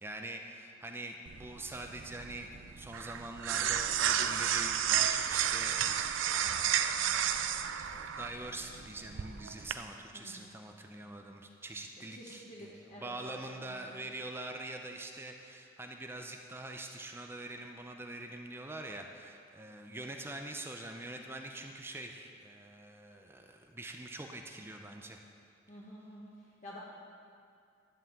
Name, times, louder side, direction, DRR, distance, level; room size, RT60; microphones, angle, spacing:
voice 1, 0.0-25.3, right 2 dB, 10° right, 3 dB, 0.5 m, -44 dB
sound 1, 1.3-9.7, right 9 dB, 75° right, 0.4 m, -32 dB
voice 2, 10.1-10.6 12.1-14.0 25.7-26.8, left 1 dB, 40° left, -6 dB, 1.3 m, -50 dB
11.0 x 5.5 x 7.5 m, 2.4 s
head